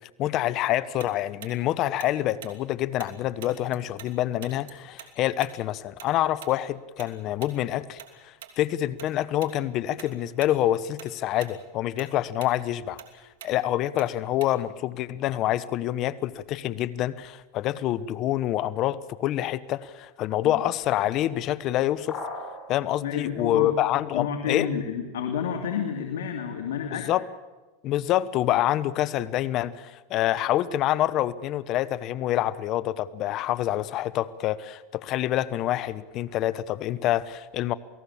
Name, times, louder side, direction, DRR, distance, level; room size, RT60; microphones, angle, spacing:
voice 1, 0.2-13.0 13.4-22.2 22.7-24.7 26.9-27.3 27.8-37.7, left 13 dB, 45° left, 17 dB, 1.0 m, -27 dB
Tick-tock, 1.0-4.1 4.4-9.1 9.4-9.6 10.0-10.6 10.9-14.8, right 10 dB, 80° right, 2.9 m, -46 dB
sound 1, 22.1-22.7, left 3 dB, 30° left, 7.3 m, -35 dB
voice 2, 23.0-23.7 24.1-27.0, left 7 dB, 85° left, 4 dB, 2.5 m, -30 dB
28.0 x 18.0 x 7.2 m, 1.2 s
supercardioid pair, 125°, 0 cm